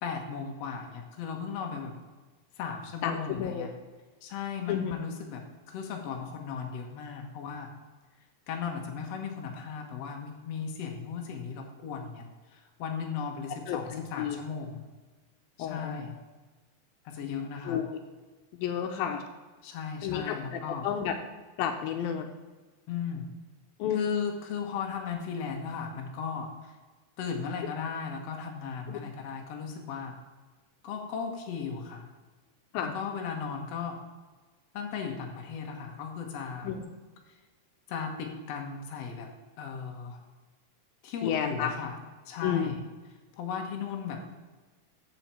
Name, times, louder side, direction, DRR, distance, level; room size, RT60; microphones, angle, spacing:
voice 1, 0.0-1.9 2.6-3.7 4.2-7.7 8.5-12.3 12.5-14.8 15.6-16.1 17.1-17.8 19.6-20.9 22.9-23.3 23.9-26.7 27.2-30.1 30.8-32.1 32.8-34.0 34.7-36.7 37.9-39.3 39.6-40.2 41.0-42.0 42.3-42.8 43.4-44.3, left 6 dB, 55° left, 2 dB, 2.0 m, -36 dB
voice 2, 3.0-3.7 4.7-5.0 13.7-14.4 15.6-16.1 17.7-18.0 18.6-19.2 20.0-21.2 21.6-22.3 23.8-24.1 28.9-29.0 32.7-33.0 36.6-36.9 41.2-41.7 42.4-42.8, left 8 dB, 80° left, 6 dB, 2.5 m, -31 dB
14.0 x 5.8 x 4.4 m, 1.3 s
omnidirectional pair, 4.1 m